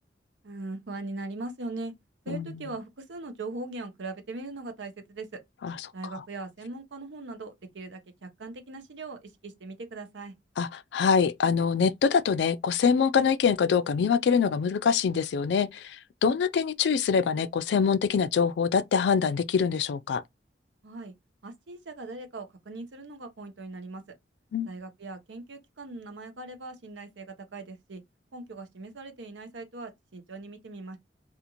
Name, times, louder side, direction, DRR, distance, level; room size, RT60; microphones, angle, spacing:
voice 1, 0.4-1.9 2.2-5.4 5.9-10.3 20.8-21.1 21.4-24.0 24.7-28.0 28.3-31.0, right 2 dB, 90° right, 0.7 m, -40 dB
voice 2, 10.6-16.0 16.2-20.2 24.5-24.7, left 6 dB, 70° left, 0.3 m, -24 dB
2.5 x 2.5 x 2.9 m
head